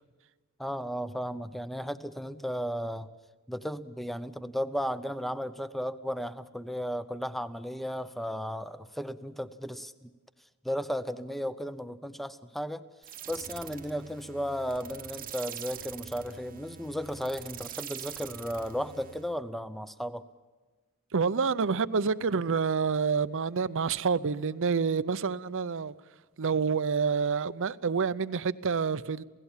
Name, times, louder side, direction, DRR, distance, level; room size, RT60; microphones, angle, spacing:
voice 1, 0.6-3.1 3.5-10.1 10.6-12.8 13.3-20.2, equal, ahead, 0.7 m, -35 dB
sound 1, 13.0-19.4, right 9 dB, 40° right, 1.0 m, -44 dB
voice 2, 21.1-25.9 26.4-29.2, right 5 dB, 60° right, 0.6 m, -28 dB
28.0 x 17.5 x 7.3 m
head